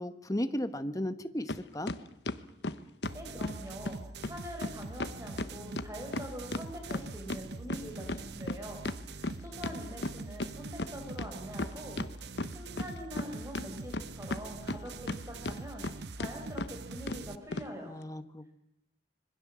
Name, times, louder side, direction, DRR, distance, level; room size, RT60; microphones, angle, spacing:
voice 1, 0.0-1.9 17.9-18.6, left 1 dB, 20° left, 10 dB, 1.1 m, -35 dB
sound 1, 1.5-1.6 1.9-3.6 3.8-3.9 4.2-4.4 4.6-4.7 5.0-7.4 7.7-10.5 10.8-10.9 11.2-12.1 12.4-13.3 13.5-15.2 15.4-15.9 16.2-16.3 16.6-16.7 17.1-17.2 17.5-17.7, left 2 dB, 70° left, 1.1 m, -35 dB
sound 2, 3.0-17.3, right 3 dB, 65° right, 1.0 m, -44 dB
voice 2, 3.1-4.0 4.2-8.8 9.1-12.0 12.5-17.9, equal, 15° right, 3 dB, 4.6 m, -44 dB
26.5 x 22.5 x 7.5 m, 0.83 s
head